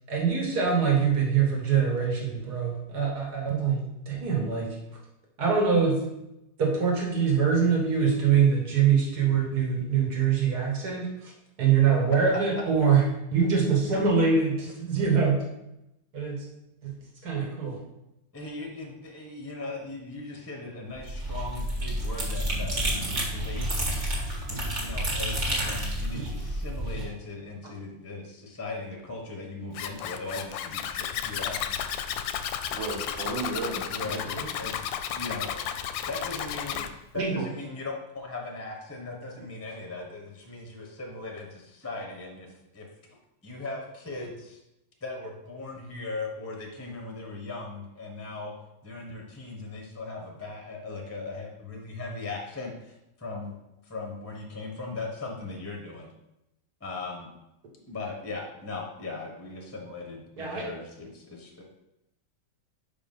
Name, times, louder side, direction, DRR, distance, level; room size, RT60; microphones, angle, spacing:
voice 1, 0.1-3.8 4.1-4.8 5.4-6.0 6.6-11.3 11.6-13.0 13.3-15.3 16.1-16.4 16.8-16.9 17.2-17.8 37.2-37.4 60.4-60.7, right 6 dB, 60° right, -1 dB, 2.0 m, -24 dB
voice 2, 18.3-24.0 24.5-31.8 33.9-35.8 36.1-36.9 37.1-42.9 43.4-44.6 45.0-48.5 48.8-53.5 53.8-56.1 56.8-57.3 57.9-61.6, left 3 dB, 10° left, 0 dB, 0.7 m, -38 dB
sound 1, 20.9-27.1, right 1 dB, 40° right, 1.9 m, -30 dB
Zipper (clothing), 29.7-36.9, left 9 dB, 90° left, 1.3 m, -33 dB
voice 3, 32.7-34.5, right 3 dB, 85° right, 1 dB, 2.0 m, -34 dB
5.5 x 4.9 x 5.5 m, 0.90 s
omnidirectional pair, 2.0 m